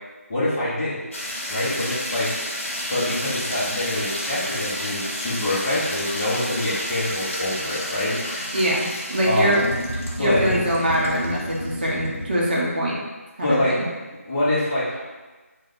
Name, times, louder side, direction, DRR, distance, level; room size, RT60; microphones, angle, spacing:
voice 1, 0.3-1.0 1.5-2.3 2.9-8.2 9.2-9.5 10.2-10.6 13.4-13.8 14.3-15.0, left 1 dB, 15° left, -12 dB, 0.7 m, -25 dB
sound 1, 1.1-12.5, equal, 55° left, 0.8 m, -30 dB
voice 2, 8.5-9.6 10.2-13.0 13.4-13.7, equal, 40° right, -5 dB, 0.7 m, -23 dB
3.2 x 2.1 x 3.8 m, 1.3 s
figure-of-eight pair, 165°, 8 cm